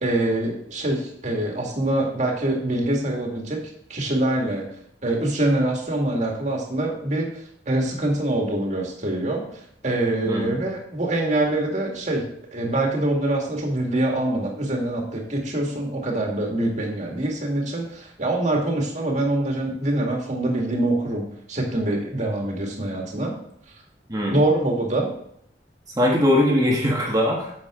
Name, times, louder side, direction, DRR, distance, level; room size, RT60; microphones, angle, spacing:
voice 1, 0.0-3.6 3.9-4.6 5.0-7.3 7.7-12.3 12.5-23.3 24.3-25.1, right 1 dB, 40° right, 0 dB, 2.0 m, -24 dB
voice 2, 10.2-10.6 24.1-24.4 26.0-27.5, left 1 dB, 20° right, -2 dB, 1.4 m, -21 dB
9.5 x 7.3 x 3.7 m, 0.69 s
head